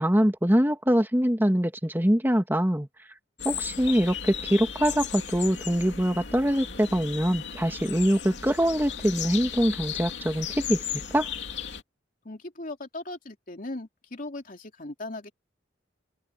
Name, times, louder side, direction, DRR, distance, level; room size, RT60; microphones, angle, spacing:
voice 1, 0.0-2.9 3.4-11.3, equal, 10° right, 2.2 m, -24 dB
sound 1, 3.4-11.8, left 8 dB, 75° left, 2.9 m, -36 dB
voice 2, 12.2-15.3, left 2 dB, 50° left, 3.1 m, -38 dB
open air
head